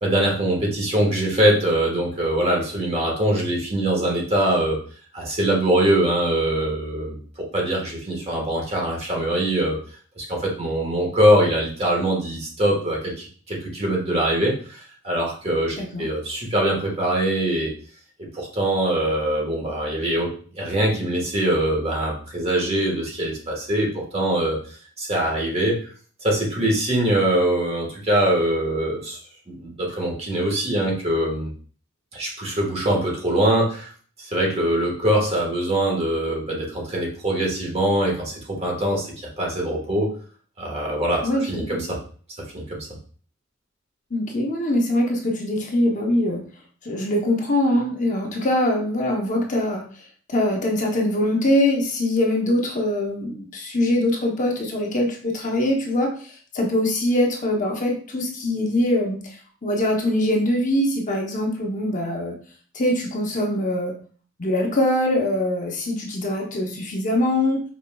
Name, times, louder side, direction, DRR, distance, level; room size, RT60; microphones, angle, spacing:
voice 1, 0.0-4.8 5.1-9.8 10.2-17.7 18.2-24.6 25.0-25.8 26.2-29.2 29.5-31.5 32.1-33.9 34.2-40.1 40.6-41.2 41.5-42.0 42.5-42.9, right 1 dB, 30° right, -1 dB, 1.4 m, -23 dB
voice 2, 41.2-41.8 44.1-46.4 46.8-49.8 50.3-59.2 59.6-62.4 62.7-63.9 64.4-67.6, left 1 dB, 40° left, 0 dB, 0.8 m, -23 dB
5.4 x 4.1 x 2.3 m, 0.43 s
head